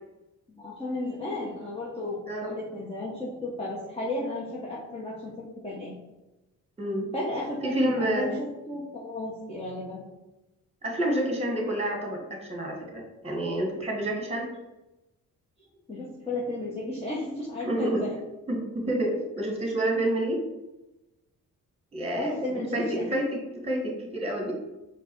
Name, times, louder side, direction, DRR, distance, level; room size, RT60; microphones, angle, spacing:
voice 1, 0.6-5.9 7.1-10.0 15.9-18.2 22.1-23.1, left 2 dB, 15° left, -7 dB, 1.2 m, -33 dB
voice 2, 6.8-7.1 7.6-8.3 10.8-14.5 17.6-18.0 18.5-20.4 21.9-24.5, right 1 dB, 15° right, 1 dB, 1.6 m, -29 dB
4.5 x 2.4 x 4.6 m, 0.99 s
hypercardioid pair, 40°, 41 cm